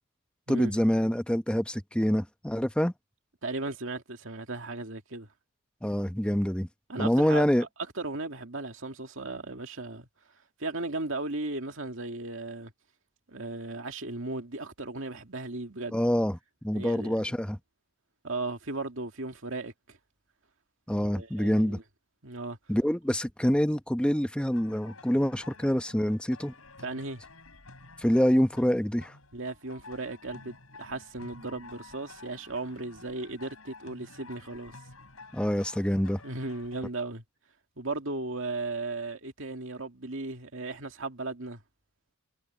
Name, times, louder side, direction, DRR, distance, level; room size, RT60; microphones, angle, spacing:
voice 1, 0.5-2.9 5.8-6.7 7.0-7.7 15.9-16.4 16.6-17.6 20.9-21.8 22.7-26.5 28.0-29.1 35.3-36.2, equal, 5° left, 0.8 m, -26 dB
voice 2, 3.4-5.3 6.9-7.7 8.0-10.1 10.6-12.7 13.3-16.0 16.7-17.3 18.2-20.0 21.0-21.8 22.2-22.6 26.8-27.2 29.3-34.7 36.2-37.2 37.8-41.6, right 2 dB, 60° right, 2.5 m, -36 dB
sound 1, 24.5-36.9, left 3 dB, 70° left, 6.9 m, -51 dB
head